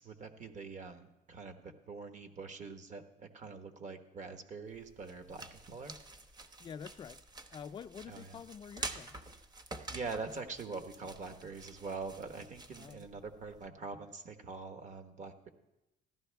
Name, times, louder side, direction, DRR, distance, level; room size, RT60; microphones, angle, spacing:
voice 1, 0.0-5.9 8.1-8.4 9.9-15.5, right 4 dB, 45° right, 1.3 m, -44 dB
sound 1, 4.7-13.7, right 2 dB, 25° right, 0.9 m, -48 dB
voice 2, 6.6-7.2 7.5-9.2 12.8-13.1, left 7 dB, 30° left, 0.3 m, -47 dB
14.5 x 12.0 x 3.4 m
cardioid pair, 110°, 17 cm